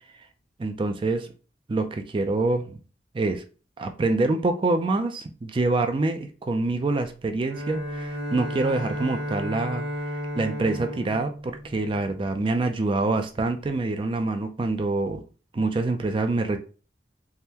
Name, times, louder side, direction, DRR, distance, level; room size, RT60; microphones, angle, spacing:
voice 1, 0.6-1.3 1.7-2.8 3.1-3.4 3.8-9.8 10.1-15.2 15.5-16.6, right 2 dB, 30° right, 7 dB, 0.3 m, -26 dB
Bowed string instrument, 7.5-12.6, equal, 85° right, 1.1 m, -33 dB
3.5 x 2.1 x 2.8 m, 0.36 s
head